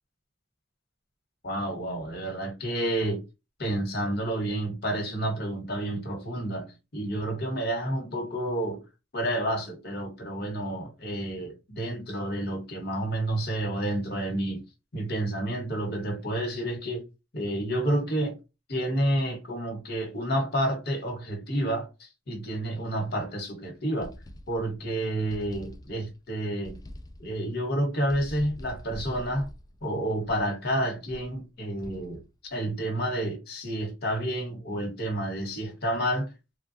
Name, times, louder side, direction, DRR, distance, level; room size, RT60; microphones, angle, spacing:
voice 1, 1.4-3.2 3.6-8.8 9.1-14.6 14.9-17.0 17.3-18.4 18.7-24.1 24.5-26.8 27.2-29.5 29.8-32.2 32.5-36.3, right 1 dB, 55° left, 1.2 m, -30 dB
sound 1, 24.0-24.9 25.3-26.2 26.6-27.4 28.1-30.6 31.1-31.4 31.8-32.4, equal, 20° left, 0.3 m, -45 dB
3.2 x 2.3 x 2.7 m
head